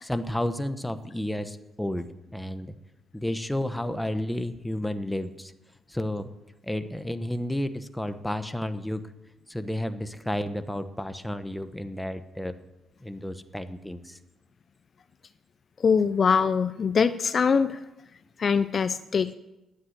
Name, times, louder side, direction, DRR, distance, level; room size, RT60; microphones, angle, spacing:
voice 1, 0.0-2.7 3.1-5.5 5.9-6.3 6.6-9.1 9.5-12.6 13.0-14.2, left 1 dB, 5° left, 10 dB, 1.0 m, -31 dB
voice 2, 15.8-17.8 18.4-19.4, left 6 dB, 45° left, 13 dB, 0.4 m, -23 dB
11.5 x 9.3 x 8.0 m, 0.98 s
cardioid pair, 90°, 0 cm